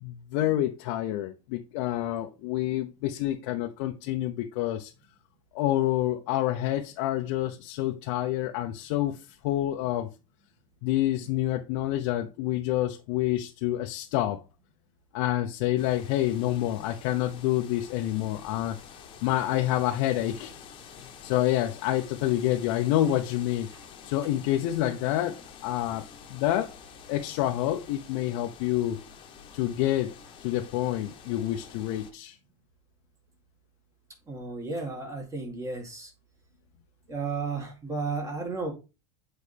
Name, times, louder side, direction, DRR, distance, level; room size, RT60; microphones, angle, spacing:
voice 1, 0.0-4.9 5.5-10.1 10.8-14.4 15.1-18.8 19.2-20.5 21.2-23.7 24.0-26.7 27.1-29.0 29.5-30.1 30.4-32.4, left 13 dB, 60° left, 0.7 m, -28 dB
sound 1, 15.8-32.1, left 6 dB, 30° left, 1.2 m, -48 dB
voice 2, 34.3-36.1 37.1-38.7, right 4 dB, 15° right, 2.0 m, -33 dB
8.4 x 4.0 x 3.4 m
supercardioid pair, 145°, 18 cm